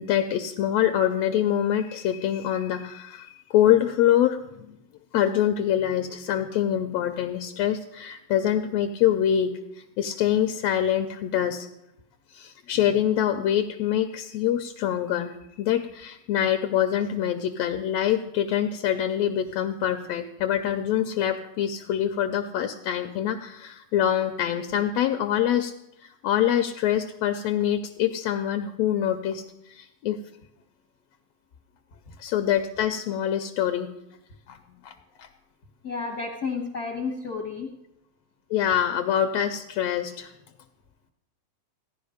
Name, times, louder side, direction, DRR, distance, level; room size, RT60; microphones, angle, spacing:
voice 1, 0.0-4.7 5.1-11.7 12.3-25.7 26.0-29.4 29.7-30.2 32.2-33.9 34.5-34.6 34.8-35.3 38.5-40.3, left 10 dB, 80° left, 7 dB, 1.6 m, -25 dB
voice 2, 35.8-37.7, left 4 dB, 55° left, 0 dB, 1.0 m, -31 dB
16.0 x 11.0 x 4.9 m, 0.87 s
omnidirectional pair, 3.3 m